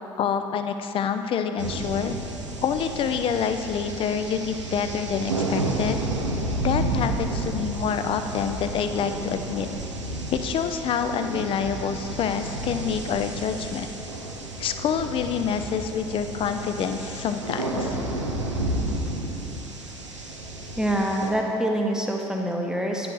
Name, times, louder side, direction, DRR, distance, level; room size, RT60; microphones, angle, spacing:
voice 1, 0.2-2.2 2.6-6.0 6.6-9.7 10.3-13.9 14.6-18.0, left 7 dB, 35° left, 8 dB, 0.4 m, -27 dB
sound 1, 1.6-21.3, right 1 dB, 85° right, 0.6 m, -31 dB
voice 2, 20.8-23.1, right 1 dB, 5° right, 1 dB, 0.8 m, -25 dB
9.6 x 6.1 x 3.1 m, 2.8 s
figure-of-eight pair, 55°, 15 cm